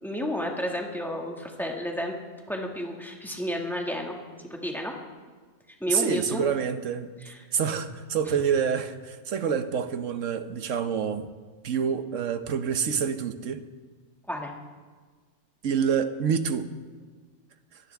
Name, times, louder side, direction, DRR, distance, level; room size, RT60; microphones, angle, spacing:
voice 1, 0.0-2.1 2.5-4.9 5.8-6.4 7.2-7.4 8.3-8.4 14.3-14.5, equal, ahead, 0 dB, 1.8 m, -31 dB
voice 2, 5.9-7.1 7.5-11.3 11.6-13.6 15.6-16.7, right 7 dB, 70° right, 9 dB, 1.2 m, -27 dB
22.5 x 16.0 x 3.5 m, 1.5 s
omnidirectional pair, 1.4 m